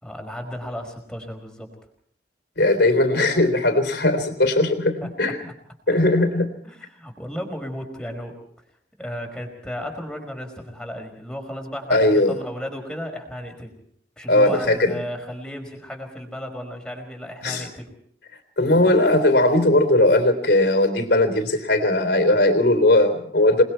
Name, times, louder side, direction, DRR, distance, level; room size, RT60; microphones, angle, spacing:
voice 1, 0.0-1.7 6.6-8.3 9.0-13.7 14.2-17.9, equal, 5° left, 3 dB, 4.9 m, -34 dB
voice 2, 2.6-5.4 5.9-6.5 11.9-12.4 14.3-15.0 17.4-17.7 18.6-23.6, left 1 dB, 65° left, 9 dB, 3.6 m, -18 dB
28.5 x 21.0 x 4.6 m, 0.66 s
head